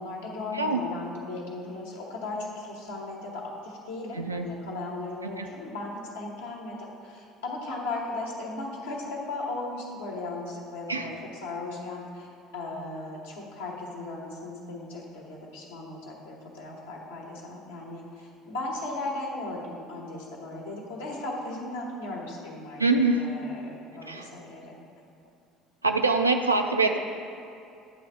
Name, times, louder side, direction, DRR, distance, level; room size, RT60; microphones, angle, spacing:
voice 1, 0.0-12.3 12.5-24.7, left 2 dB, 70° left, -2 dB, 1.3 m, -37 dB
voice 2, 4.2-4.5 5.4-5.5 10.9-11.1 22.8-23.2 24.1-24.3 25.8-27.0, right 3 dB, 90° right, 4 dB, 0.4 m, -24 dB
9.5 x 3.4 x 6.2 m, 2.6 s
figure-of-eight pair, 60°, 0 cm